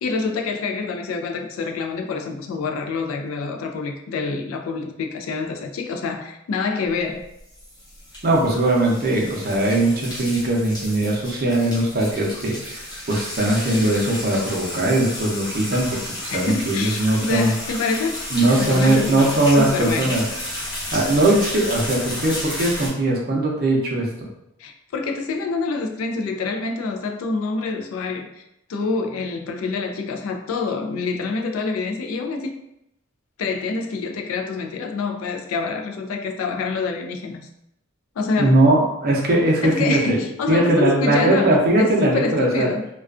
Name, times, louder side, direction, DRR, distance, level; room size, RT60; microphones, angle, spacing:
voice 1, 0.0-7.3 16.3-20.2 24.6-28.4 28.7-32.5 33.4-37.5 38.2-38.6 39.6-42.9, left 4 dB, 80° left, 3 dB, 0.3 m, -26 dB
sound 1, 7.2-22.9, left 1 dB, 20° left, 0.7 m, -32 dB
voice 2, 8.2-17.5 18.3-20.2 20.9-24.1 38.3-40.2 40.5-42.7, right 1 dB, 45° right, -2 dB, 0.5 m, -20 dB
2.4 x 2.2 x 2.3 m, 0.81 s
head